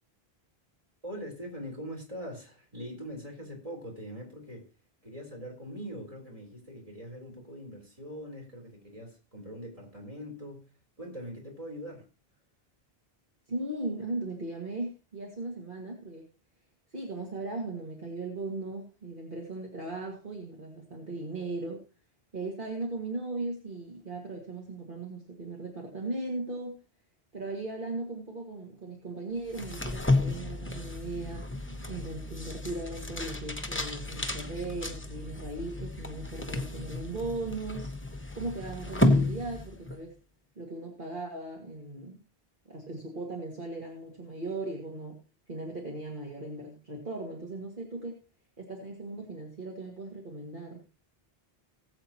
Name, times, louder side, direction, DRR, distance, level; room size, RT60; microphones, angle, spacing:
voice 1, 1.0-4.7 5.0-12.1, equal, 35° right, -1 dB, 3.9 m, -42 dB
voice 2, 13.5-16.2 16.9-21.8 22.3-26.8 27.3-31.5 31.9-37.9 38.3-40.1 40.6-42.2 42.7-45.2 45.5-48.2 48.6-50.8, right 2 dB, 55° right, -1 dB, 2.1 m, -38 dB
sound 1, 29.5-40.0, left 1 dB, 15° left, 0.9 m, -32 dB
19.5 x 8.1 x 3.0 m, 0.33 s
omnidirectional pair, 1.0 m